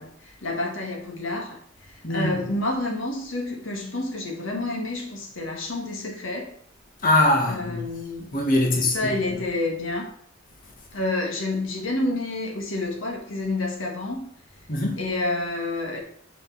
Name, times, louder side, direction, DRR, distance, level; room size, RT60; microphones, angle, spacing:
voice 1, 0.0-6.5 7.5-8.4 8.9-10.1 10.9-14.3 15.0-16.0, left 2 dB, 85° left, 1.8 m, -29 dB
voice 2, 2.0-2.4 7.0-7.8 8.3-9.0 14.7-15.0, left 1 dB, 45° left, 1.5 m, -22 dB
5.9 x 5.2 x 6.1 m
head